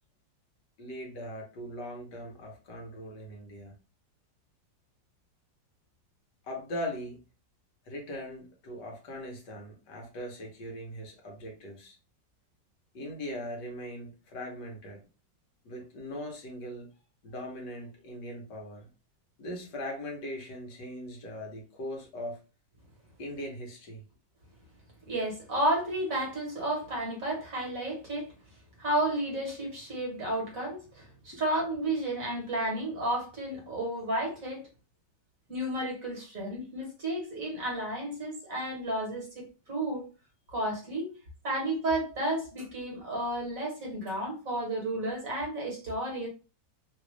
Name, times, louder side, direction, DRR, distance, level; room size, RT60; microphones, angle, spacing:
voice 1, 0.8-3.7 6.4-7.2 7.8-12.0 12.9-15.0 15.6-16.9 17.2-18.9 19.4-22.4 23.2-24.0 31.3-31.4, equal, 65° left, 1.6 m, -40 dB
voice 2, 25.1-28.3 28.8-34.6 35.5-40.1 40.5-41.1 41.4-46.3, right 1 dB, 50° right, 1.6 m, -32 dB
3.6 x 2.4 x 3.1 m
omnidirectional pair, 2.0 m